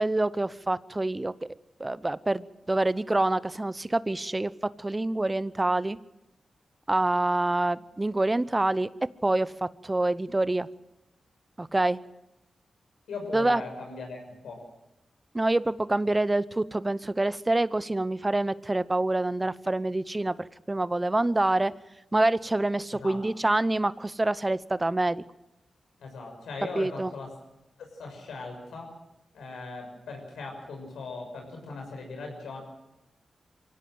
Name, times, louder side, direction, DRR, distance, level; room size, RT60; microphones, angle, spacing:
voice 1, 0.0-1.3 1.8-4.5 4.8-6.0 6.9-8.9 9.2-10.7 11.6-12.0 13.3-13.6 15.3-21.7 22.1-25.2 26.8-27.1, right 2 dB, 25° right, 17 dB, 0.7 m, -26 dB
voice 2, 13.1-14.7 22.9-23.2 26.0-27.3 28.0-28.9 29.3-32.6, left 3 dB, 90° left, 2 dB, 6.5 m, -39 dB
23.5 x 17.0 x 7.8 m, 0.93 s
cardioid pair, 45°, 0 cm